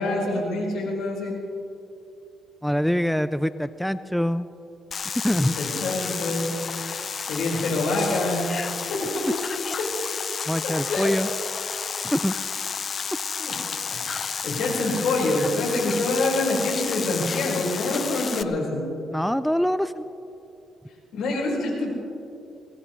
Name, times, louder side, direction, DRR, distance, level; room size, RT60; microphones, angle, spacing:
voice 1, 0.0-1.3 5.3-6.5 7.3-8.4 8.9-9.3 9.8-9.9 10.6-11.1 13.4-13.5 13.9-14.0 14.4-18.8 21.1-21.9, left 2 dB, 75° left, -2 dB, 4.8 m, -26 dB
voice 2, 2.6-4.5 5.2-5.5 10.5-11.3 12.1-12.3 19.1-20.1, equal, ahead, 13 dB, 0.4 m, -24 dB
sound 1, 4.9-18.4, left 6 dB, 45° left, 0.6 m, -31 dB
22.5 x 19.0 x 3.2 m, 2.7 s
cardioid pair, 90°, 0 cm